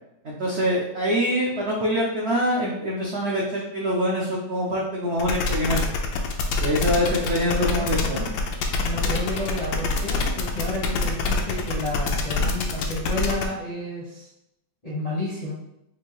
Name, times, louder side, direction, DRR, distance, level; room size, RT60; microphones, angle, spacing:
voice 1, 0.2-5.8 6.6-8.3, equal, 70° right, -4 dB, 0.6 m, -25 dB
sound 1, 5.2-13.5, left 3 dB, 85° left, 1.3 m, -25 dB
voice 2, 6.9-8.2 8.8-14.3 14.8-15.5, left 1 dB, 40° left, -6 dB, 0.5 m, -31 dB
4.4 x 2.6 x 3.0 m, 0.83 s
omnidirectional pair, 1.9 m